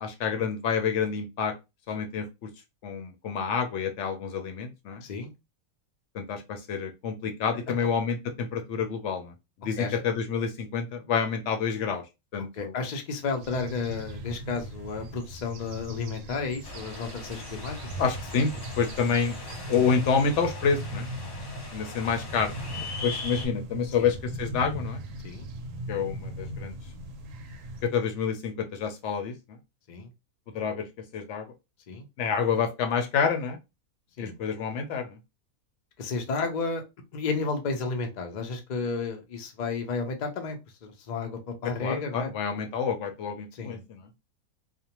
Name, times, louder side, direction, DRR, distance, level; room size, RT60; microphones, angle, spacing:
voice 1, 0.0-1.5 1.9-2.3 2.8-5.0 6.1-9.3 9.6-12.0 12.3-12.7 18.0-18.5 18.8-19.4 19.7-21.1 21.7-22.5 23.0-25.0 25.9-26.7 27.8-29.3 30.5-30.9 31.1-31.5 32.2-33.6 34.2-35.2 41.8-44.1, left 6 dB, 65° left, 6 dB, 0.8 m, -28 dB
voice 2, 5.0-5.3 9.8-10.0 12.5-17.7 19.7-19.9 24.0-24.1 25.2-25.5 29.9-30.1 31.9-32.1 34.2-34.3 36.0-36.8 37.1-42.3 43.5-43.8, left 4 dB, 85° left, 4 dB, 0.4 m, -32 dB
sound 1, 13.4-27.8, right 1 dB, 70° right, 0.9 m, -39 dB
sound 2, 16.6-23.5, left 3 dB, 35° left, 0.8 m, -41 dB
2.5 x 2.1 x 2.9 m, 0.24 s
omnidirectional pair, 1.5 m